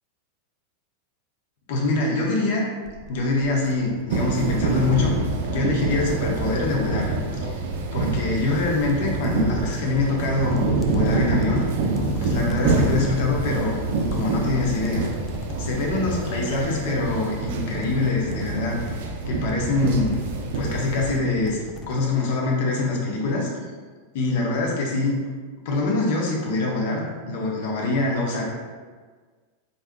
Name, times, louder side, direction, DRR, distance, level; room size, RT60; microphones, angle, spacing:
voice 1, 1.7-2.7 3.1-5.2 5.5-7.6 7.9-10.6 10.9-11.7 12.2-13.8 14.1-15.0 15.6-19.0 19.3-20.2 20.5-21.6 21.9-23.5 24.1-25.2 25.6-28.5, left 2 dB, 50° left, -1 dB, 0.7 m, -24 dB
sound 1, 2.8-22.2, left 2 dB, 25° left, 0.4 m, -39 dB
Moscow suburban train Belorusskiy, 4.1-21.2, right 3 dB, 50° right, 0.4 m, -26 dB
3.8 x 3.4 x 2.2 m, 1.5 s
figure-of-eight pair, 90°, 0 cm